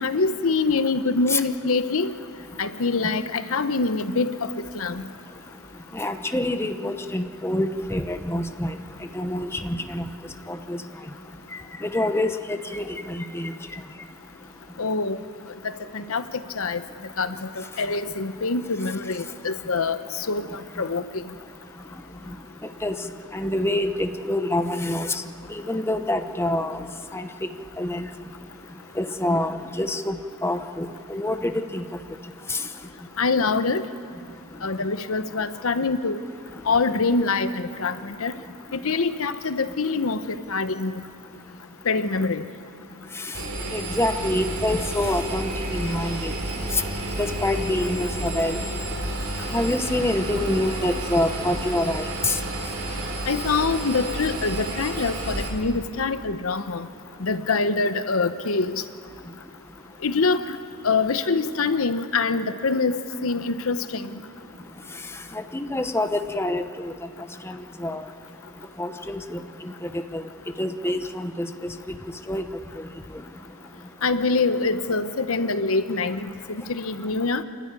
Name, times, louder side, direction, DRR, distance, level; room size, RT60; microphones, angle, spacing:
voice 1, 0.0-2.1 2.6-4.5 4.7-5.0 14.8-15.2 15.9-16.2 16.5-16.8 17.2-21.2 33.2-33.8 34.6-36.2 36.7-38.3 38.7-41.0 41.9-42.5 53.3-56.9 57.2-58.8 60.0-60.6 60.8-64.2 74.0-77.4, left 4 dB, 70° left, 11 dB, 0.9 m, -25 dB
voice 2, 5.9-8.7 9.1-10.1 10.5-10.8 11.8-13.5 22.8-23.0 23.3-25.2 25.5-26.8 27.1-27.3 27.8-28.1 29.0-31.8 32.5-32.6 43.3-43.4 43.7-46.3 46.7-46.8 47.2-48.6 49.5-52.4 65.3-66.9 67.4-68.0 68.8-70.2 70.6-71.7 72.3-72.4, left 1 dB, 10° left, 7 dB, 0.8 m, -26 dB
Engine, 43.3-55.5, right 1 dB, 65° right, 4.4 m, -31 dB
28.0 x 12.5 x 9.8 m, 2.4 s
head